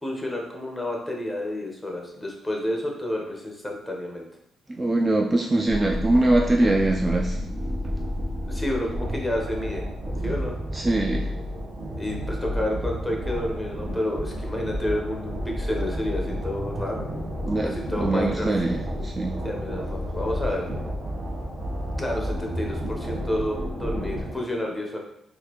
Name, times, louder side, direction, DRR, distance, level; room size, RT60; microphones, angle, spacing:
voice 1, 0.0-4.3 8.4-9.8 10.2-10.6 11.9-17.2 17.6-18.5 19.4-20.8 22.0-25.0, left 1 dB, 5° left, 0 dB, 0.9 m, -30 dB
voice 2, 4.7-7.4 10.7-11.3 17.5-19.4, right 2 dB, 25° right, 1 dB, 0.3 m, -23 dB
sound 1, 5.7-24.4, equal, 50° right, 0.9 m, -31 dB
3.9 x 2.5 x 2.9 m, 0.78 s
cardioid pair, 85°, 0 cm